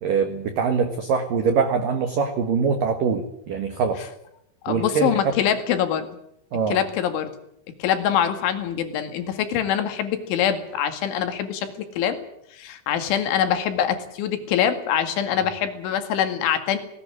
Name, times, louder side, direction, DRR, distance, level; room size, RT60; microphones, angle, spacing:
voice 1, 0.0-4.1 4.7-5.3 6.5-6.8, right 5 dB, 60° right, 6 dB, 2.5 m, -23 dB
voice 2, 4.6-6.1 6.7-7.3 7.8-12.2 12.5-16.8, left 9 dB, 70° left, 8 dB, 4.3 m, -24 dB
19.0 x 18.5 x 9.8 m, 0.77 s
omnidirectional pair, 5.8 m